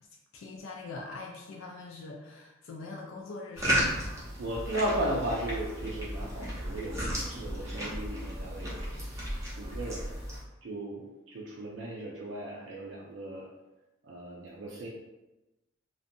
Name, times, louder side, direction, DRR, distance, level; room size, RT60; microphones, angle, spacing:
voice 1, 0.3-4.2, left 3 dB, 80° left, 0 dB, 0.3 m, -43 dB
sound 1, 3.5-10.4, equal, 15° right, 0.6 m, -34 dB
voice 2, 4.4-9.3 9.6-10.1 10.6-13.5 14.0-14.9, right 1 dB, 65° right, -4 dB, 0.3 m, -36 dB
2.5 x 2.2 x 2.5 m, 1.0 s
head